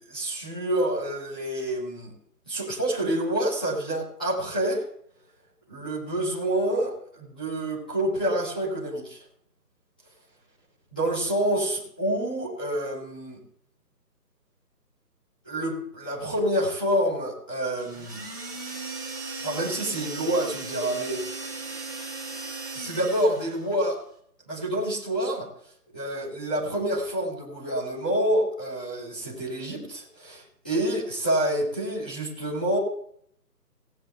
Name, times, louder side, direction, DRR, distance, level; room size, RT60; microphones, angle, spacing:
voice 1, 0.1-2.1 2.4-4.8 5.7-9.2 10.9-13.4 15.4-18.3 19.4-21.5 22.7-24.0 24.5-25.5 25.9-32.8, right 1 dB, 5° left, -10 dB, 1.4 m, -27 dB
sound 1, 17.8-23.7, right 3 dB, 10° right, 1.1 m, -37 dB
18.0 x 9.3 x 3.8 m, 0.65 s
hypercardioid pair, 175°, 49 cm